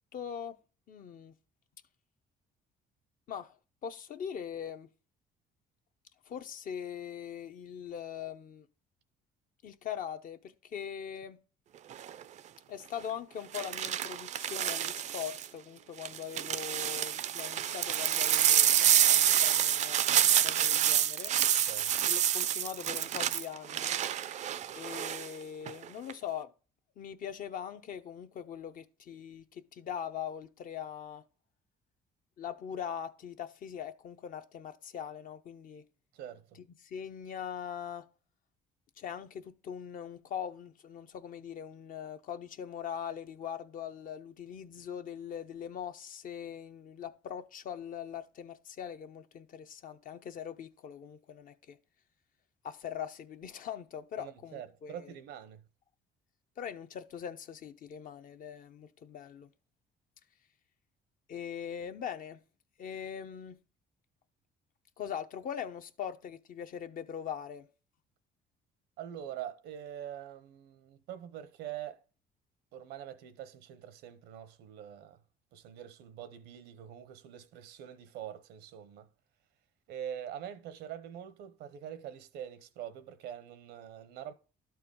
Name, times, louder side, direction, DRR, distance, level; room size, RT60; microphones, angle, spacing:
voice 1, 0.1-0.6 0.9-1.3 3.3-3.5 3.8-4.9 6.3-8.7 9.6-11.4 12.7-21.3 22.1-24.0 24.7-26.5 27.0-31.2 32.4-35.8 36.8-38.0 39.0-51.8 52.6-55.1 56.6-59.5 61.3-62.4 62.8-63.6 65.0-67.7, left 8 dB, 55° left, 0.7 m, -41 dB
sound 1, 11.9-12.2 13.5-15.5 16.0-25.3 25.7-26.1, right 10 dB, 45° right, 0.4 m, -28 dB
voice 2, 36.1-36.6 54.2-55.6 69.0-72.0 72.7-75.2 75.5-79.1 79.9-84.3, right 10 dB, 85° right, 0.8 m, -44 dB
12.0 x 4.4 x 3.7 m
cardioid pair, 110°, 17 cm